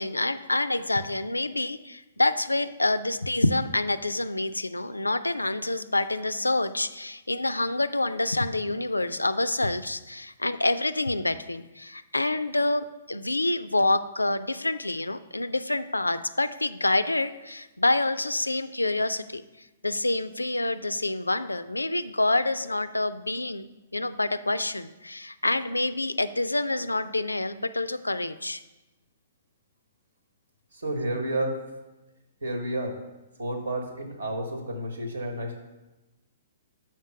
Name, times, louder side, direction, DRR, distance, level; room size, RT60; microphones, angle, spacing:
voice 1, 0.0-28.6, left 2 dB, 85° left, 14 dB, 0.3 m, -27 dB
voice 2, 30.7-31.6 32.4-33.0 33.4-35.6, right 1 dB, 70° right, 5 dB, 1.2 m, -31 dB
5.9 x 4.5 x 5.7 m, 1.1 s
figure-of-eight pair, 120°, 0 cm